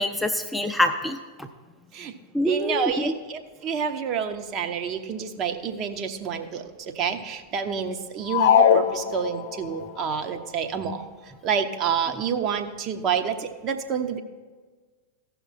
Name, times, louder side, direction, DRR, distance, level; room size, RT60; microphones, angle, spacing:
voice 1, 0.0-1.5 2.3-3.1, equal, ahead, 5 dB, 0.5 m, -25 dB
voice 2, 2.4-11.0 11.4-14.2, right 7 dB, 35° right, 7 dB, 0.7 m, -28 dB
sound 1, 8.3-9.7, left 8 dB, 55° left, 0.4 m, -20 dB
15.0 x 5.8 x 4.2 m, 1.4 s
figure-of-eight pair, 90°, 0 cm